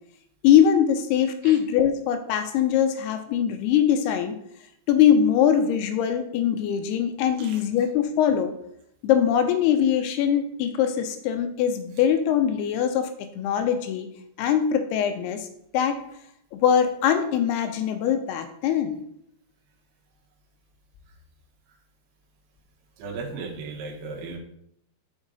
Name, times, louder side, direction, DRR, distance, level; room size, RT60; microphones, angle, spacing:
voice 1, 0.4-4.4 4.9-8.5 9.0-13.1 13.4-14.1 14.4-15.5 15.7-16.0 16.5-19.0, left 9 dB, 80° left, 8 dB, 2.4 m, -22 dB
voice 2, 23.0-24.4, right 4 dB, 75° right, 1 dB, 2.9 m, -36 dB
6.2 x 4.9 x 3.9 m, 0.74 s
omnidirectional pair, 4.8 m